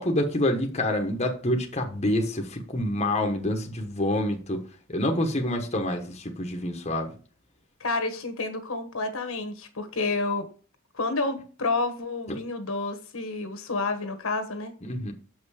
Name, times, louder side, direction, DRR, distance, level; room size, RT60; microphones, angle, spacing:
voice 1, 0.0-4.6 4.9-7.1 14.9-15.1, left 1 dB, 30° left, 1.1 m, -27 dB
voice 2, 7.8-10.5 10.9-14.7, left 3 dB, 70° left, 1.4 m, -29 dB
7.4 x 5.5 x 4.8 m
head